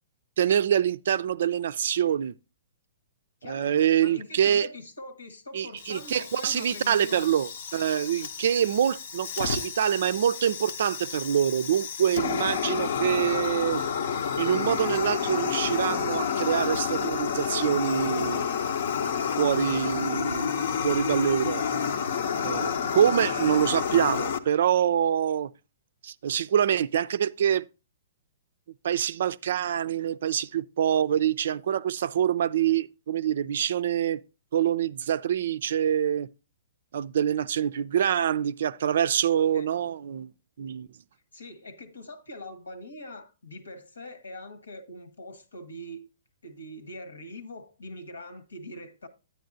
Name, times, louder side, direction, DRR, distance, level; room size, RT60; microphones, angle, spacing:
voice 1, 0.4-2.3 3.5-4.7 5.5-13.8 14.4-18.5 19.4-21.8 22.4-25.5 26.0-27.6 28.8-34.2 34.5-36.3 36.9-40.3 40.6-40.9, right 9 dB, 60° right, 0.3 m, -25 dB
voice 2, 3.4-7.4 22.8-23.0 39.5-39.7 41.3-46.1 46.4-49.1, left 1 dB, 80° left, 1.4 m, -43 dB
Fire, 5.8-24.4, left 7 dB, 60° left, 0.7 m, -30 dB
9.3 x 9.3 x 2.6 m
figure-of-eight pair, 120°, 0 cm